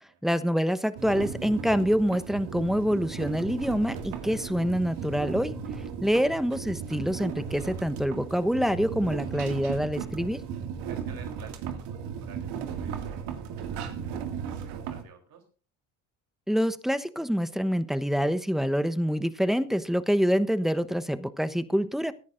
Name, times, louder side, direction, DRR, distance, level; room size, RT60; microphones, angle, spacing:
voice 1, 0.2-5.6 6.0-10.4 16.5-22.1, equal, ahead, 12 dB, 1.0 m, -26 dB
sound 1, 1.0-15.0, right 7 dB, 70° right, 2.3 m, -36 dB
voice 2, 10.8-15.4, right 7 dB, 55° right, 3 dB, 3.6 m, -52 dB
23.0 x 10.5 x 2.6 m, 0.36 s
hypercardioid pair, 70°, 42 cm